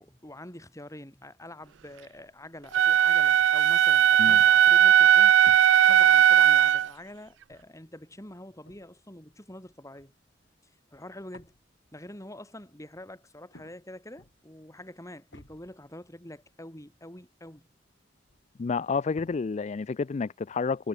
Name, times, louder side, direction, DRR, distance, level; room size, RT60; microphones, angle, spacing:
voice 1, 0.0-5.4 5.9-10.1 10.6-11.5 11.9-17.7, left 1 dB, 15° left, 6.1 m, -46 dB
sound 1, 2.6-2.8 3.4-11.1 11.3-11.8 13.4-13.8 14.2-14.9 15.3-16.6 17.0-17.1 17.4-19.7, left 1 dB, 75° left, 4.6 m, -57 dB
Wind instrument woodwind instrument, 2.7-6.9, right 10 dB, 70° right, 0.3 m, -18 dB
voice 2, 18.6-20.9, left 4 dB, 35° left, 0.4 m, -30 dB
head